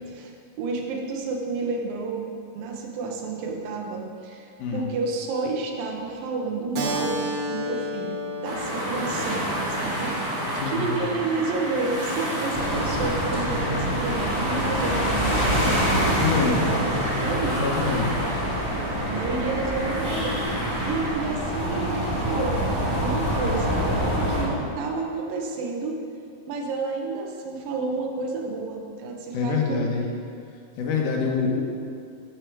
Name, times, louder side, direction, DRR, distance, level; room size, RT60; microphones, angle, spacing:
voice 1, 0.0-7.2 7.5-15.7 16.2-16.9 17.2-17.6 19.1-20.4 20.9-22.6 23.0-23.8 24.3-26.0 26.5-29.9, right 3 dB, 80° right, 0 dB, 2.8 m, -30 dB
Keyboard (musical), 6.7-11.9, equal, 60° right, 2.0 m, -33 dB
sound 1, 8.4-21.1, equal, 35° right, 1.5 m, -30 dB
voice 2, 10.5-11.0 16.2-16.6 17.4-18.1 29.3-30.0 30.8-31.6, left 5 dB, 70° left, 0 dB, 2.5 m, -25 dB
sound 2, 12.5-24.4, equal, 10° left, 2.0 m, -26 dB
14.0 x 6.2 x 4.6 m, 2.3 s
omnidirectional pair, 4.0 m